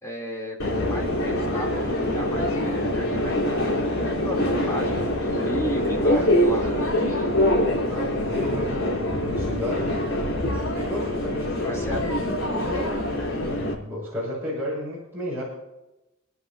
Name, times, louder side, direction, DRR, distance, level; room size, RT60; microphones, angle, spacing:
voice 1, 0.0-5.1 5.4-7.2 11.6-12.0, left 1 dB, 15° left, -1 dB, 3.1 m, -34 dB
Subway metro underground, 0.6-13.7, left 1 dB, 75° left, 3.4 m, -24 dB
voice 2, 7.9-10.0 10.8-13.1 13.4-15.4, equal, 10° right, -8 dB, 6.5 m, -33 dB
28.5 x 10.5 x 2.7 m, 0.94 s
head